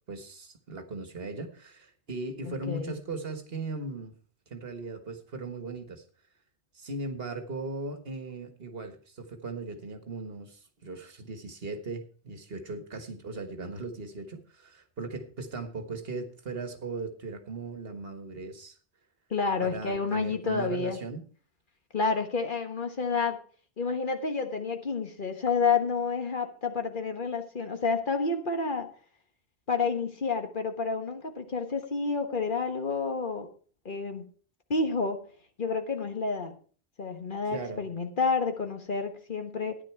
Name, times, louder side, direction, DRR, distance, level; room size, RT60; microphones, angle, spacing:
voice 1, 0.1-4.2 4.5-6.0 6.7-18.8 19.6-21.2 37.5-37.9, right 3 dB, 65° right, 7 dB, 1.7 m, -38 dB
voice 2, 2.4-2.9 19.3-21.0 21.9-23.4 23.8-28.9 29.7-33.5 33.8-34.3 34.7-35.2 35.6-36.5 37.0-39.8, left 4 dB, 50° left, 6 dB, 1.5 m, -29 dB
13.0 x 10.0 x 4.5 m, 0.42 s
omnidirectional pair, 1.1 m